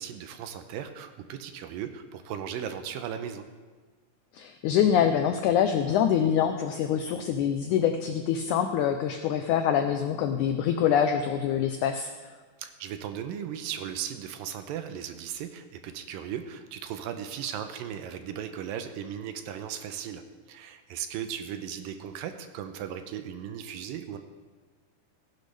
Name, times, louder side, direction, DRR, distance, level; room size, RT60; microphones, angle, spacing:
voice 1, 0.0-3.5 12.6-20.2 20.5-24.2, right 9 dB, 85° right, 8 dB, 2.3 m, -37 dB
voice 2, 4.3-12.3, left 8 dB, 90° left, 7 dB, 1.7 m, -25 dB
16.5 x 10.5 x 3.3 m, 1.4 s
omnidirectional pair, 4.1 m